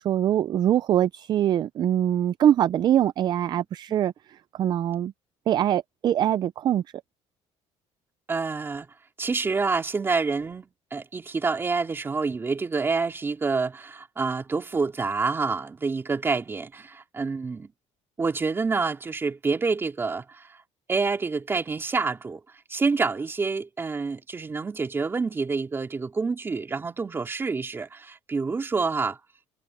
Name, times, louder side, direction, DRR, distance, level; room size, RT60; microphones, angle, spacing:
voice 1, 0.0-4.1 4.5-5.1 5.5-6.8, right 11 dB, 35° right, 0.4 m, -23 dB
voice 2, 8.3-8.9 9.2-17.7 18.2-20.5 20.9-22.4 22.7-29.2, right 4 dB, 20° right, 2.9 m, -27 dB
cardioid pair, 165°, 13 cm